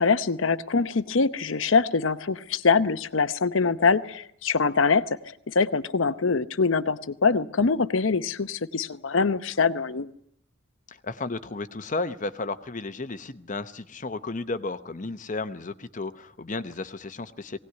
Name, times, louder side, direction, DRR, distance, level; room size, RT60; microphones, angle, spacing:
voice 1, 0.0-10.1, left 4 dB, 75° left, 14 dB, 0.8 m, -24 dB
voice 2, 10.9-17.6, left 3 dB, 40° left, 11 dB, 0.8 m, -33 dB
20.5 x 18.0 x 9.6 m, 0.70 s
head